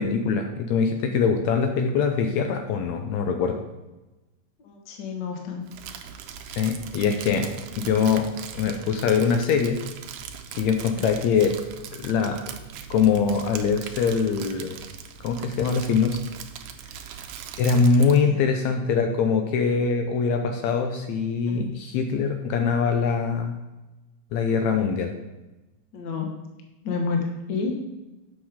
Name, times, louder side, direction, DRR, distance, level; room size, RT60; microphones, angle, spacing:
voice 1, 0.0-3.6 6.6-7.5 7.8-8.3 8.5-9.8 10.5-11.6 11.9-12.4 12.9-14.8 15.2-16.2 17.6-23.6 24.3-25.1, left 5 dB, 80° left, 5 dB, 1.8 m, -23 dB
voice 2, 4.6-5.7 10.9-11.1 18.2-18.4 21.5-21.7 25.9-26.4 26.8-27.8, left 4 dB, 65° left, 2 dB, 1.1 m, -30 dB
Crumpling crinkling, 5.7-18.3, right 8 dB, 85° right, 2.0 m, -40 dB
7.2 x 6.3 x 3.6 m, 1.1 s
omnidirectional pair, 3.5 m